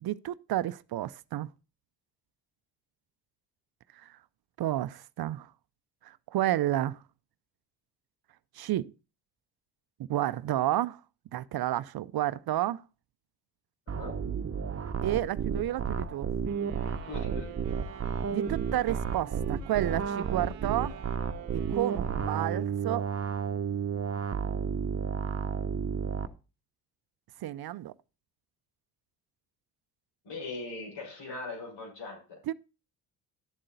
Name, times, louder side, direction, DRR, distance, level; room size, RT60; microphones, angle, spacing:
voice 1, 0.0-1.5 4.0-4.2 4.6-5.5 6.0-7.0 8.6-8.9 10.1-11.0 11.3-12.8 15.0-16.3 18.3-21.0 21.5-23.0 27.4-27.9 32.5-32.6, right 13 dB, 55° right, 0.6 m, -31 dB
voice 2, 13.9-14.2 17.0-17.6 30.2-32.4, left 3 dB, 65° left, 5.9 m, -40 dB
sound 1, 13.9-26.3, right 6 dB, 30° right, 1.2 m, -32 dB
sound 2, 16.4-23.0, right 14 dB, 90° right, 0.9 m, -49 dB
12.0 x 7.5 x 4.1 m
hypercardioid pair, 50°, 46 cm